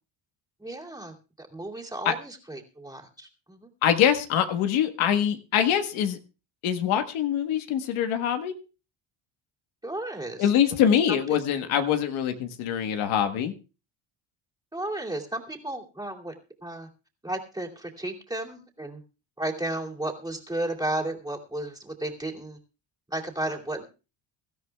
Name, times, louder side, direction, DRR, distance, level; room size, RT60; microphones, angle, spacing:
voice 1, 0.6-3.7 9.8-10.5 10.9-11.4 14.7-16.3 16.6-16.9 17.2-19.0 19.4-22.6 23.1-23.8, right 1 dB, 10° right, 2.6 m, -34 dB
voice 2, 3.8-6.2 6.6-8.5 10.4-13.5, left 9 dB, 85° left, 1.5 m, -24 dB
23.5 x 13.0 x 2.3 m
cardioid pair, 125°, 46 cm